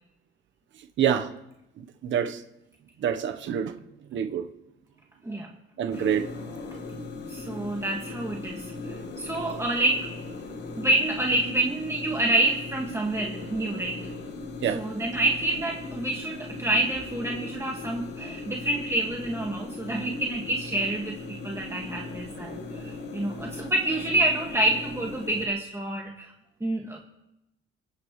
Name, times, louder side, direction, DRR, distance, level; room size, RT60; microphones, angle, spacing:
voice 1, 1.0-1.3 1.8-2.4 3.0-3.7 4.1-4.5 5.8-6.2 14.6-14.8, right 9 dB, 70° right, 1.1 m, -26 dB
sound 1, 5.9-25.5, left 3 dB, 60° left, 1.6 m, -38 dB
voice 2, 7.3-10.1 10.8-14.1 14.7-21.2 21.4-26.3 26.6-27.0, right 2 dB, 15° right, 1.9 m, -28 dB
24.5 x 9.9 x 3.2 m
cardioid pair, 90°, 20 cm